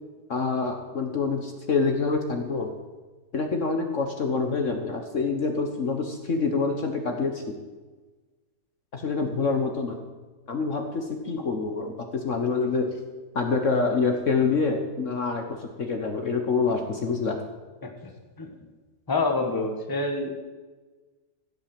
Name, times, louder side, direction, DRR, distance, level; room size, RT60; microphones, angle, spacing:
voice 1, 0.3-2.7 3.3-7.4 8.9-10.0 10.5-12.9 13.3-17.4, left 4 dB, 50° left, 4 dB, 1.4 m, -26 dB
voice 2, 19.1-20.3, left 3 dB, 15° left, 4 dB, 1.4 m, -26 dB
15.5 x 7.4 x 7.7 m, 1.3 s
omnidirectional pair, 1.8 m